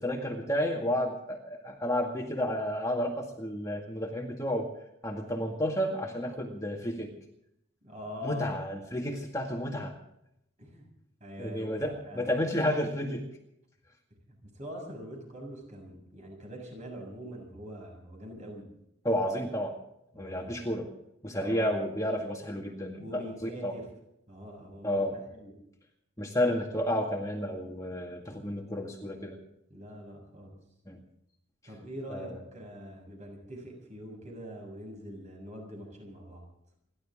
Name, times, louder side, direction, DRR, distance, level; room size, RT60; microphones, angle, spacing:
voice 1, 0.0-4.7 5.0-7.1 8.2-9.9 11.4-13.2 19.0-19.7 20.2-20.9 21.2-23.7 24.8-25.1 26.2-29.4 30.9-31.0 32.1-32.4, equal, 15° left, 1 dB, 2.0 m, -31 dB
voice 2, 7.8-8.6 10.6-10.9 11.2-12.3 14.3-18.7 20.1-20.7 21.3-21.7 23.0-23.9 24.3-25.5 29.7-30.5 31.7-36.4, equal, 35° right, 1 dB, 6.9 m, -43 dB
29.5 x 12.0 x 3.7 m, 0.79 s
head